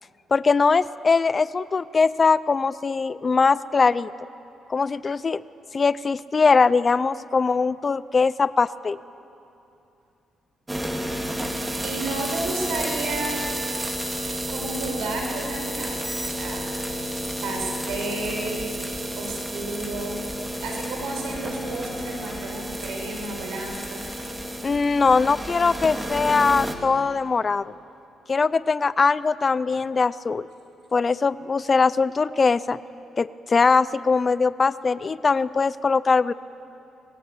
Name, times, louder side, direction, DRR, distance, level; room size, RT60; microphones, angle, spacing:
voice 1, 0.3-4.1 4.7-5.4 5.7-9.0 24.6-27.7 28.3-30.5 30.9-32.8 33.2-36.3, left 4 dB, 35° left, 17 dB, 0.6 m, -21 dB
sound 1, 10.7-26.7, right 1 dB, 15° right, 2.2 m, -31 dB
voice 2, 11.8-13.5 13.8-13.9 14.5-17.0 17.4-18.7 19.2-20.2 20.6-24.0, right 2 dB, 85° right, 1 dB, 5.7 m, -32 dB
25.0 x 20.5 x 8.4 m, 2.7 s
cardioid pair, 90°, 0 cm